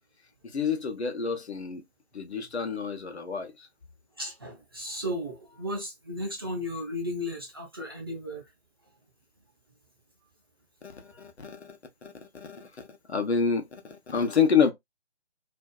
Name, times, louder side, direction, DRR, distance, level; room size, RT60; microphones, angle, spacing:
voice 1, 0.4-1.8 2.1-3.7 10.8-14.7, left 6 dB, 80° left, 0.8 m, -28 dB
voice 2, 4.2-8.4 11.1-11.3, left 1 dB, 25° right, 0.4 m, -35 dB
2.6 x 2.3 x 2.2 m
figure-of-eight pair, 145°, 33 cm